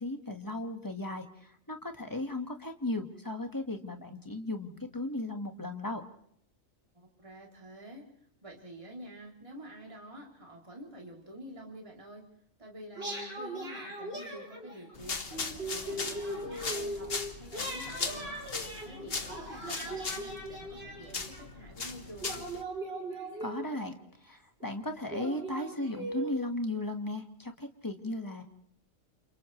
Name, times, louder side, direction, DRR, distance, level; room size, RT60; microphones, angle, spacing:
voice 1, 0.0-6.0 23.4-24.0 24.2-28.4, left 2 dB, 15° left, 5 dB, 1.6 m, -36 dB
voice 2, 6.9-12.3 12.6-17.1 17.4-18.4 18.8-22.4, right 1 dB, 25° right, -1 dB, 3.1 m, -48 dB
sound 1, 12.9-14.9 15.3-17.2 17.5-21.4 22.2-23.9 24.6-24.7 25.1-26.3, right 1 dB, 50° right, 5.4 m, -39 dB
sound 2, 14.9-22.6, left 4 dB, 45° left, 1.6 m, -39 dB
29.5 x 27.5 x 3.2 m, 0.68 s
omnidirectional pair, 1.4 m